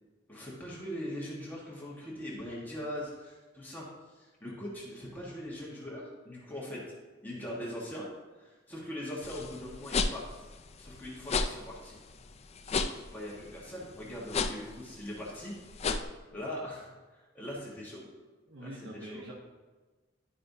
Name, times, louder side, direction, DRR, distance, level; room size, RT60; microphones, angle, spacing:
voice 1, 0.3-6.8 7.2-8.1 8.4-10.3 10.8-12.0 13.1-15.5 16.3-18.1 18.6-18.7 19.1-19.2, equal, 10° left, -6 dB, 1.4 m, -41 dB
sound 1, 9.2-16.0, left 4 dB, 35° left, 0.4 m, -34 dB
voice 2, 18.5-19.3, right 1 dB, 70° right, -3 dB, 1.1 m, -44 dB
11.0 x 5.4 x 2.7 m, 1.3 s
head